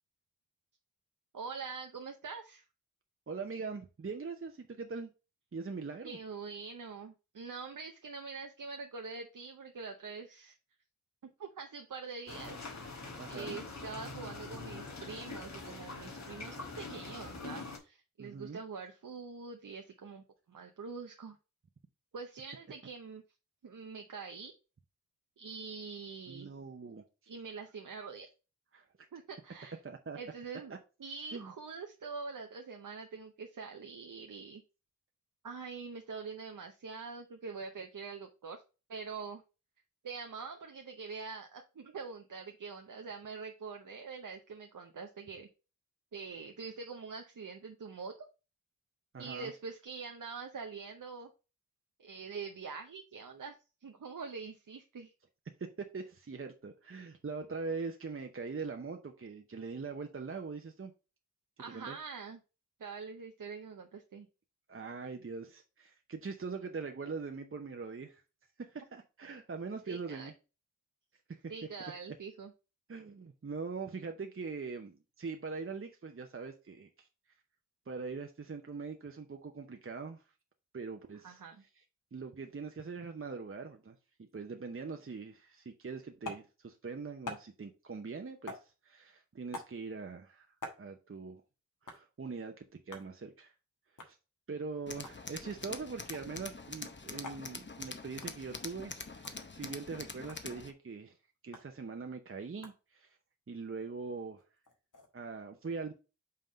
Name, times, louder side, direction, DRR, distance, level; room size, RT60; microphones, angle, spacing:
voice 1, 1.3-2.6 6.0-10.5 11.4-12.6 13.2-21.4 22.1-23.2 23.6-24.5 25.4-26.5 27.3-28.3 29.1-29.8 30.2-30.7 31.0-34.6 35.4-38.6 38.9-39.4 40.0-45.5 46.1-48.1 49.2-51.3 52.0-53.5 53.8-55.1 61.6-62.4 62.8-64.3 69.9-70.3 71.5-72.5 81.2-81.6, right 5 dB, 85° right, 0.8 m, -44 dB
voice 2, 3.3-5.1 5.5-6.2 13.2-13.6 18.2-18.6 26.3-27.0 28.7-28.9 29.8-30.2 31.3-31.5 49.1-49.5 55.8-60.9 61.7-62.0 64.7-68.2 68.6-70.3 71.3-71.4 72.9-77.1 77.9-80.2 80.7-81.4 82.1-90.5 90.8-91.4 91.8-93.5 94.0-94.2 94.5-99.3 99.5-101.1 101.4-103.1 103.5-104.4 105.1-105.9, right 4 dB, 45° right, 0.8 m, -42 dB
sound 1, 12.3-17.8, left 3 dB, 60° left, 1.5 m, -44 dB
sound 2, 86.2-86.5 87.3-87.5 88.5-88.7 89.5-89.8 90.6-90.8 91.9-92.0 92.9-93.1 94.0-94.2 94.9-95.2 96.1-96.3 97.2-97.5 98.2-98.4 99.2-99.4 100.3-100.4 101.5-101.7 102.6-102.8 104.4-105.1, left 2 dB, 80° left, 1.4 m, -45 dB
Tools, 94.9-100.7, left 3 dB, 35° left, 0.8 m, -45 dB
5.7 x 3.6 x 5.2 m
wide cardioid pair, 55°, 31 cm